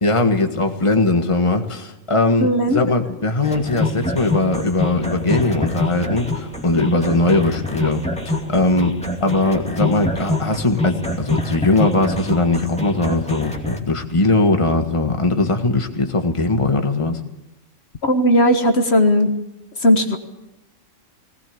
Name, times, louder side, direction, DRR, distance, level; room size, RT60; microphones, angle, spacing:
voice 1, 0.0-17.2, left 2 dB, 25° left, 5 dB, 1.7 m, -20 dB
voice 2, 2.4-2.8 18.0-19.3 19.8-20.2, equal, 55° left, 6 dB, 1.7 m, -16 dB
sound 1, 3.4-13.8, left 2 dB, 5° left, 2.5 m, -25 dB
19.5 x 19.0 x 8.6 m, 0.91 s
omnidirectional pair, 1.3 m